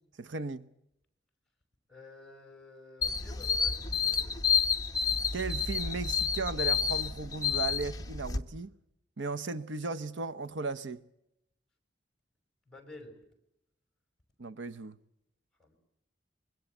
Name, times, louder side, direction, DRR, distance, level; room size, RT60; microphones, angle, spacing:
voice 1, 0.2-0.7 5.3-8.7 9.2-11.0 14.4-15.0, right 4 dB, 90° right, 0.9 m, -36 dB
voice 2, 1.9-4.4 12.7-13.2 15.6-15.8, left 2 dB, 5° left, 5.4 m, -51 dB
sound 1, 3.0-8.4, left 6 dB, 20° left, 1.1 m, -30 dB
25.0 x 22.0 x 7.9 m
head